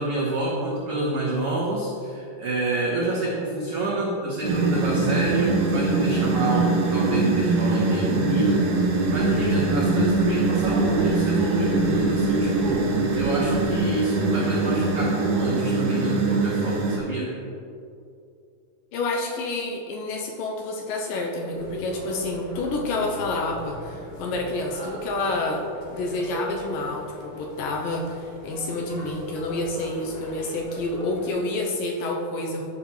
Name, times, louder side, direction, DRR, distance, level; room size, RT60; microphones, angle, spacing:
voice 1, 0.0-17.3, right 2 dB, 85° right, -5 dB, 1.2 m, -27 dB
sound 1, 4.4-17.0, right 2 dB, 65° right, 1.7 m, -23 dB
sound 2, 8.7-13.8, equal, 45° right, 1.2 m, -42 dB
voice 2, 18.9-25.6 25.9-32.7, left 2 dB, 75° left, 0 dB, 2.3 m, -29 dB
sound 3, 21.5-31.3, left 1 dB, 50° left, 2.5 m, -39 dB
13.5 x 6.0 x 3.2 m, 2.5 s
omnidirectional pair, 4.4 m